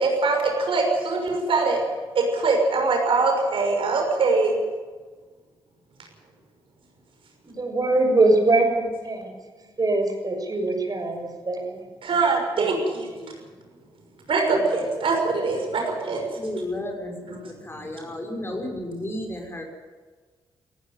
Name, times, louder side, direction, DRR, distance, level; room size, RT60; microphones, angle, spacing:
voice 1, 0.0-1.8 2.1-4.5 12.0-13.1 14.3-16.2 17.2-17.9, right 3 dB, 65° right, 2 dB, 6.4 m, -23 dB
voice 2, 7.4-9.3 9.8-11.8 12.6-12.7 13.1-13.3 14.5-14.6, right 2 dB, 40° right, 4 dB, 6.5 m, -23 dB
voice 3, 16.4-17.1 17.6-19.6, left 1 dB, 25° left, 1 dB, 6.0 m, -32 dB
18.0 x 15.5 x 9.3 m, 1.4 s
cardioid pair, 60°, 10 cm